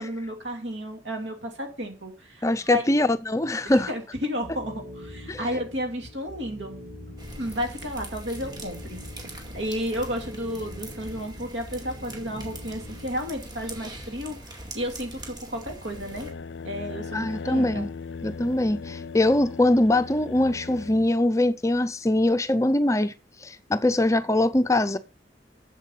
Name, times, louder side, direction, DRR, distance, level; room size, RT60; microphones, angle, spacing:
voice 1, 0.0-2.8 3.6-6.8 7.4-9.0 9.5-16.3 16.6-17.9, equal, 80° right, 2.7 m, -32 dB
voice 2, 2.4-3.9 5.3-5.5 17.1-17.9 18.2-23.1 23.4-25.0, left 1 dB, 15° left, 0.4 m, -22 dB
sound 1, 4.4-13.6, left 1 dB, 50° right, 2.8 m, -44 dB
sound 2, 7.2-16.3, right 1 dB, 25° right, 2.2 m, -42 dB
sound 3, 15.8-21.1, left 5 dB, 75° left, 0.5 m, -38 dB
7.9 x 7.3 x 5.5 m
head